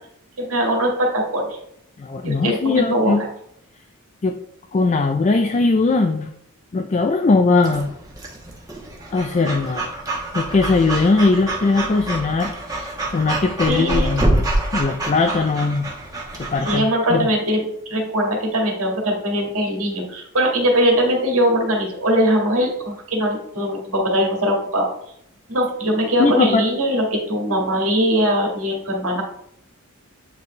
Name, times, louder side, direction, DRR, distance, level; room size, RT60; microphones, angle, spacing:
voice 1, 0.4-1.6 2.2-3.1 13.7-14.2 16.6-17.6 17.9-24.9 25.5-29.2, equal, 75° right, 0 dB, 1.8 m, -21 dB
voice 2, 2.0-3.2 4.2-4.4 4.7-6.3 6.7-7.9 9.1-10.0 10.3-14.4 14.7-15.9 16.3-17.3 26.2-26.6, left 3 dB, 30° left, 6 dB, 0.3 m, -20 dB
Breathing / Dog, 7.6-16.8, right 1 dB, 15° right, 1.1 m, -26 dB
8.7 x 4.1 x 3.2 m, 0.72 s
head